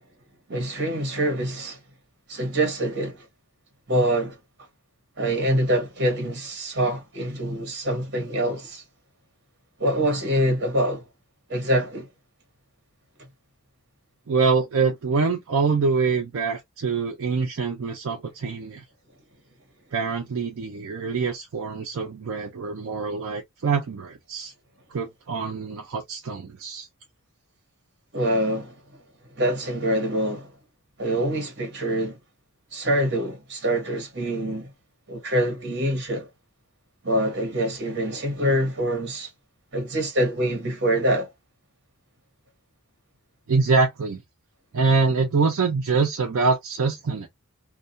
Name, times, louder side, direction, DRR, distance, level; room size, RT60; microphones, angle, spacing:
voice 1, 0.5-1.8 2.3-3.2 3.9-4.3 5.2-8.8 9.8-11.0 11.5-12.0 28.1-28.7 29.4-30.5 31.0-32.2 32.7-34.7 35.1-36.3 37.0-39.3 39.7-41.3, equal, 50° right, 1.0 m, -25 dB
voice 2, 14.3-18.8 19.9-24.5 24.9-26.9 43.5-44.2 44.7-47.3, right 4 dB, 65° right, 0.4 m, -24 dB
2.3 x 2.2 x 2.5 m
head